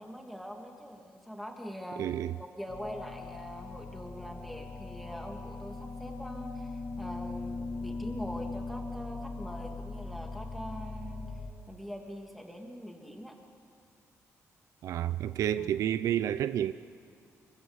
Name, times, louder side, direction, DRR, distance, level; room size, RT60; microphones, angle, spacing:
voice 1, 0.0-2.1 2.6-11.3 11.7-13.3 15.6-15.8, equal, ahead, 2.5 m, -43 dB
voice 2, 2.0-2.3 14.8-16.7, right 11 dB, 75° right, 0.6 m, -30 dB
sound 1, 2.7-11.5, left 3 dB, 40° left, 1.8 m, -40 dB
26.5 x 25.5 x 8.1 m
cardioid pair, 175°, 6 cm